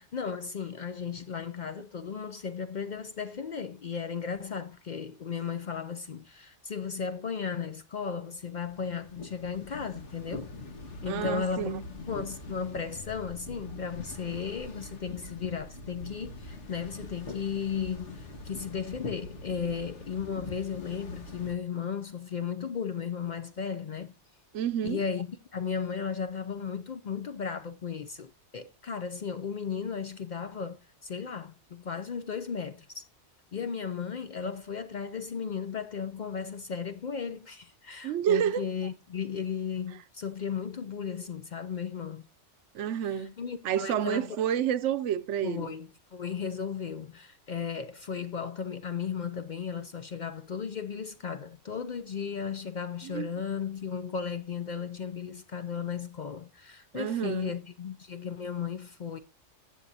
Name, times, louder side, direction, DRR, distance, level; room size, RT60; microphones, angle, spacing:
voice 1, 0.0-10.5 11.0-11.7 12.1-24.1 24.8-33.0 33.5-42.3 43.1-44.4 45.4-59.2, left 6 dB, 55° left, 0.5 m, -35 dB
sound 1, 8.4-21.5, left 2 dB, 75° left, 1.7 m, -43 dB
voice 2, 11.1-11.8 24.5-25.0 38.0-38.7 42.7-43.3 43.6-45.7 53.0-53.3 56.9-57.5, right 9 dB, 80° right, 1.0 m, -29 dB
13.5 x 8.1 x 2.7 m
omnidirectional pair, 1.2 m